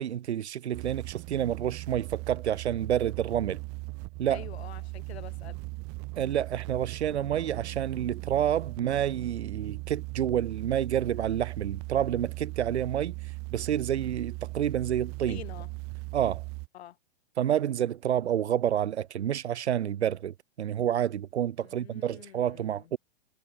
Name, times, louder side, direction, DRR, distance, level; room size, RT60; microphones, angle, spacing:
voice 1, 0.0-3.6 4.2-4.4 6.2-13.2 13.5-15.4 16.1-16.4 17.4-23.0, right 10 dB, 75° right, 1.6 m, -29 dB
sound 1, 0.7-16.7, right 27 dB, 45° right, 6.2 m, -38 dB
voice 2, 4.3-5.6 15.3-15.7 16.7-17.0 21.6-22.9, left 11 dB, 70° left, 5.0 m, -46 dB
hypercardioid pair, 110°, 33 cm